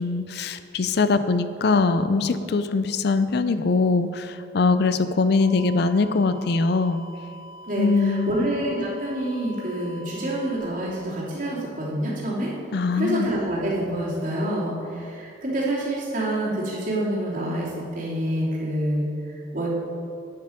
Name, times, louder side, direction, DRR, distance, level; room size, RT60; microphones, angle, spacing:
voice 1, 0.0-7.0 7.8-8.4 12.7-13.3, left 3 dB, 55° left, 11 dB, 0.4 m, -22 dB
sound 1, 5.4-10.6, right 1 dB, 80° left, 2.2 m, -44 dB
voice 2, 7.7-12.5 12.9-19.7, right 1 dB, 40° right, -6 dB, 2.9 m, -27 dB
11.0 x 9.4 x 5.1 m, 2.6 s
head